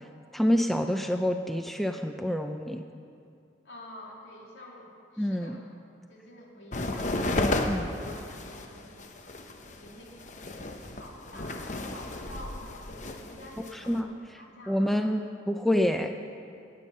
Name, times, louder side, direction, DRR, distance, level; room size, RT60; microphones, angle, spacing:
voice 1, 0.3-2.8 5.2-5.6 7.7-7.9 13.7-14.1 14.7-15.2 15.5-16.1, equal, ahead, 5 dB, 0.4 m, -27 dB
voice 2, 3.6-5.6 6.1-9.3 9.8-10.2 10.6-14.0 14.4-15.0, left 1 dB, 75° left, -2 dB, 2.7 m, -48 dB
sound 1, 6.7-14.0, left 2 dB, 40° left, 0.8 m, -33 dB
17.5 x 8.5 x 5.5 m, 2.5 s
head